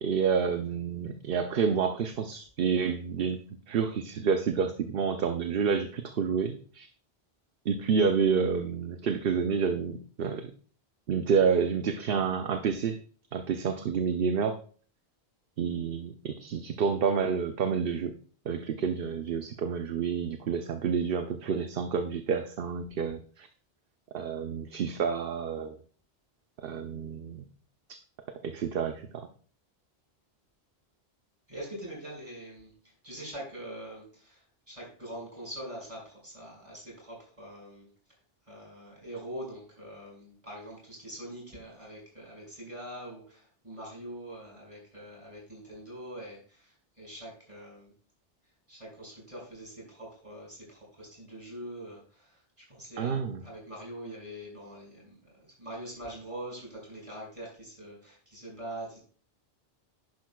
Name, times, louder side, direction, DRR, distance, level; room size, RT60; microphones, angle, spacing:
voice 1, 0.0-3.4 3.7-6.9 7.7-10.5 11.1-13.0 13.3-14.6 15.6-18.1 18.5-23.5 24.1-25.8 26.6-27.4 28.4-29.3 53.0-53.4, right 6 dB, 65° right, 7 dB, 0.9 m, -29 dB
voice 2, 31.5-32.7 33.0-34.4 34.7-37.9 38.5-47.9 48.7-52.4 52.7-59.0, right 1 dB, 30° right, -3 dB, 5.6 m, -43 dB
10.5 x 10.5 x 2.3 m, 0.43 s
omnidirectional pair, 1.1 m